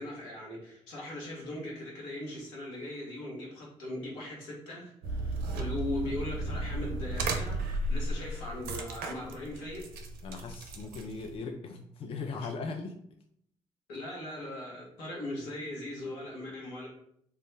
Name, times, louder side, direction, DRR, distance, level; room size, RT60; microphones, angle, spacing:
voice 1, 0.0-9.9 12.4-12.5 13.9-16.9, left 1 dB, 80° left, -3 dB, 0.9 m, -39 dB
sound 1, 5.0-11.4, right 2 dB, 65° right, 0.4 m, -35 dB
voice 2, 10.2-13.0, left 4 dB, 35° left, 4 dB, 0.4 m, -39 dB
2.2 x 2.0 x 3.2 m, 0.68 s
hypercardioid pair, 50°, 16 cm